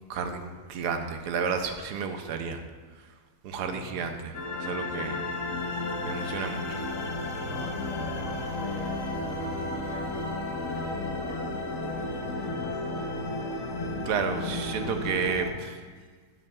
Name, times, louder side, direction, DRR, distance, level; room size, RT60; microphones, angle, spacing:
voice 1, 0.1-2.6 3.4-5.3 6.0-6.8 14.1-15.8, right 5 dB, 85° right, 6 dB, 1.2 m, -31 dB
voice 2, 3.6-4.0 7.5-13.7 13.9-14.0, equal, 35° left, -8 dB, 1.8 m, -45 dB
sound 1, 4.3-15.5, left 2 dB, 55° left, 1.2 m, -33 dB
12.5 x 6.3 x 2.3 m, 1.5 s
omnidirectional pair, 1.7 m